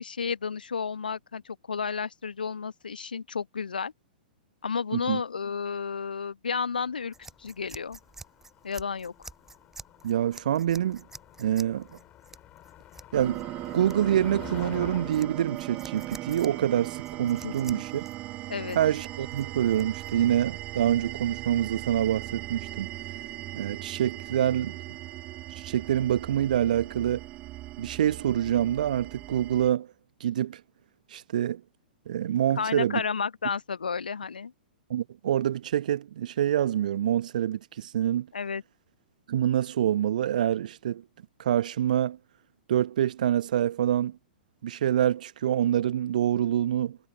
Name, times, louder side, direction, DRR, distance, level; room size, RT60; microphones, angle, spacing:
voice 1, 0.0-3.9 4.6-7.1 7.4-8.0 8.6-9.3 17.4-17.8 18.5-18.8 32.6-34.5 38.3-38.6, left 5 dB, 70° left, 1.2 m, -32 dB
Motor vehicle (road), 6.8-17.2, left 14 dB, 25° left, 5.8 m, -48 dB
sound 1, 7.1-20.3, right 3 dB, 5° right, 7.2 m, -50 dB
voice 2, 10.0-11.0 11.4-11.9 13.1-13.4 13.7-18.0 18.7-22.9 23.5-24.8 25.5-27.2 27.8-29.9 30.2-30.6 31.1-31.6 32.1-33.0 34.9-38.3 39.3-41.0 41.4-42.2 42.7-44.2 44.6-47.0, right 11 dB, 55° right, 1.1 m, -26 dB
sound 2, 13.1-29.7, right 17 dB, 30° right, 0.8 m, -38 dB
figure-of-eight pair, 105°, 5 cm